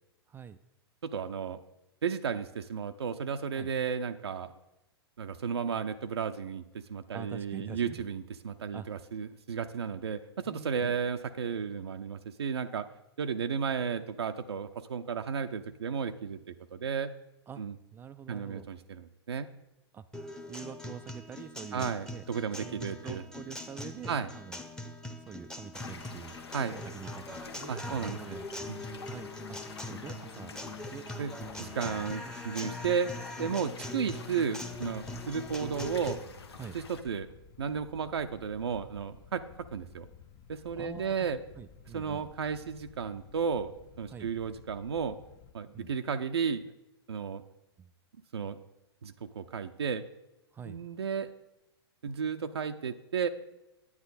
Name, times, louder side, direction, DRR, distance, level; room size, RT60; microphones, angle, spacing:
voice 1, 0.3-0.6 3.6-3.7 7.1-8.1 8.7-8.9 10.4-10.9 17.5-17.6 17.9-18.7 19.9-20.0 20.5-22.2 22.6-24.6 25.3-26.4 26.7-28.7 29.0-29.6 29.9-30.5 30.9-31.0 31.5-32.4 33.4-33.5 36.6-36.8 40.8-41.3 41.6-42.3 44.1-44.3 45.7-45.9 47.8-47.9 50.5-50.8, right 7 dB, 15° right, 12 dB, 0.3 m, -46 dB
voice 2, 1.0-1.6 2.0-4.5 5.2-12.9 13.2-17.1 17.6-17.7 18.3-19.5 21.7-23.2 24.1-24.3 26.5-26.7 27.7-28.2 28.7-28.8 31.2-31.3 31.6-33.1 33.4-36.2 36.7-37.3 37.6-39.4 39.7-40.1 40.5-41.4 41.9-43.7 44.0-45.2 45.5-46.6 47.1-47.4 48.3-48.6 49.0-50.0 50.6-51.3 52.0-53.3, right 6 dB, 75° right, 7 dB, 0.5 m, -33 dB
Guitar, 20.1-36.1, left 1 dB, 5° left, 0.9 m, -42 dB
sound 1, 25.7-37.0, left 4 dB, 75° left, 1.0 m, -48 dB
sound 2, 34.7-45.5, left 7 dB, 35° left, 0.7 m, -55 dB
9.6 x 9.4 x 4.1 m, 0.95 s
figure-of-eight pair, 105°, 14 cm